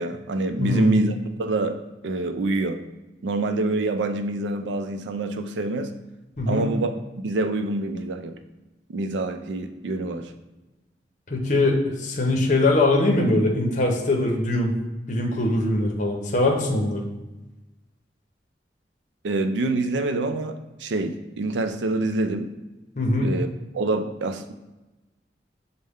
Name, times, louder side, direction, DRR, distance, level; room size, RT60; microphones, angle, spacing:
voice 1, 0.0-2.8 3.2-5.9 6.5-8.4 8.9-10.3 19.2-22.5 23.2-23.5 23.7-24.5, right 2 dB, 90° right, 7 dB, 0.4 m, -26 dB
voice 2, 0.6-0.9 6.4-6.7 11.3-14.7 15.1-17.0 23.0-23.3, left 2 dB, 45° left, 0 dB, 0.7 m, -22 dB
6.4 x 2.2 x 3.5 m, 1.1 s
head